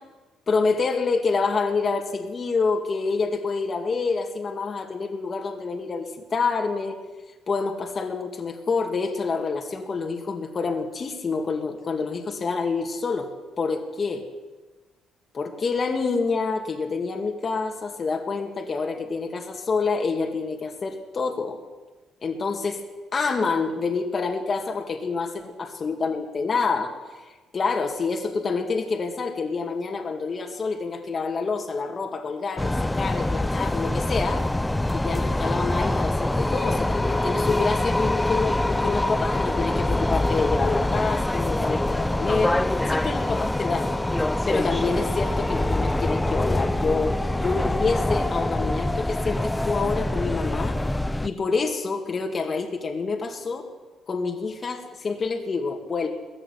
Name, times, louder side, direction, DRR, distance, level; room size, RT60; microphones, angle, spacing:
voice 1, 0.5-7.0 7.5-13.3 13.6-14.2 15.3-21.6 22.2-22.8 23.1-26.9 27.5-34.4 34.9-42.6 42.9-43.9 44.5-50.8 51.2-53.7 54.1-56.1, left 4 dB, 40° left, 3 dB, 2.6 m, -27 dB
sound 1, 32.6-51.3, left 1 dB, 10° left, 0.8 m, -24 dB
19.5 x 14.5 x 9.6 m, 1.3 s
cardioid pair, 90°, 0 cm